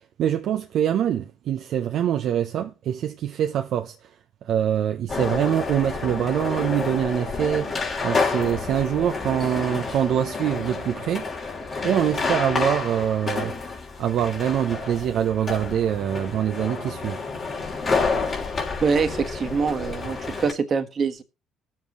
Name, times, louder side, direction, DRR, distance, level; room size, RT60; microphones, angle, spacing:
voice 1, 0.2-3.9 4.5-7.8 8.0-11.3 11.8-13.5 14.0-17.2, right 10 dB, 65° right, 0.6 m, -24 dB
sound 1, 5.1-20.5, left 4 dB, 45° left, 3.2 m, -29 dB
voice 2, 18.8-21.2, right 5 dB, 50° right, 1.4 m, -24 dB
19.0 x 7.4 x 3.1 m
supercardioid pair, 65°, 0 cm